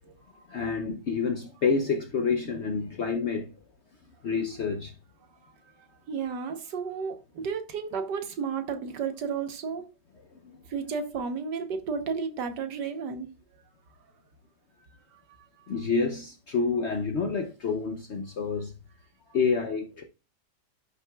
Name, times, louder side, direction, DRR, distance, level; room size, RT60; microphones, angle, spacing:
voice 1, 0.3-3.6 4.2-5.0 10.4-10.6 15.7-18.7 19.3-20.0, left 5 dB, 60° left, 0.7 m, -28 dB
voice 2, 5.8-9.9 10.7-13.3 15.1-15.7, right 6 dB, 75° right, 1.6 m, -33 dB
12.0 x 5.9 x 2.3 m
omnidirectional pair, 1.9 m